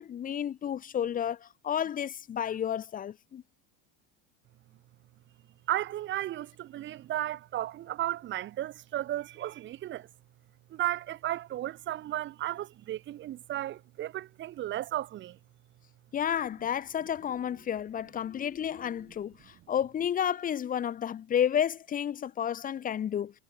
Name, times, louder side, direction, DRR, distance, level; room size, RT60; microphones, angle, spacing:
voice 1, 0.0-3.4 16.1-23.3, left 9 dB, 25° left, 3.1 m, -31 dB
voice 2, 5.7-10.1 10.7-15.4, right 13 dB, 35° right, 5.5 m, -34 dB
cardioid pair, 165°, 32 cm